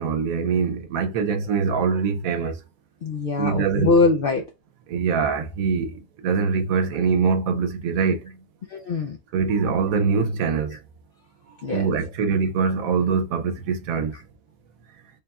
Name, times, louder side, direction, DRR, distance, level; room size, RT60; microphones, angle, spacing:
voice 1, 0.0-2.5 3.4-4.0 4.9-8.3 9.3-10.8 11.7-14.1, right 5 dB, 85° right, 1.0 m, -23 dB
voice 2, 3.0-4.4 8.7-9.2 11.6-11.9, left 3 dB, 70° left, 0.5 m, -22 dB
3.4 x 2.3 x 4.0 m
omnidirectional pair, 1.5 m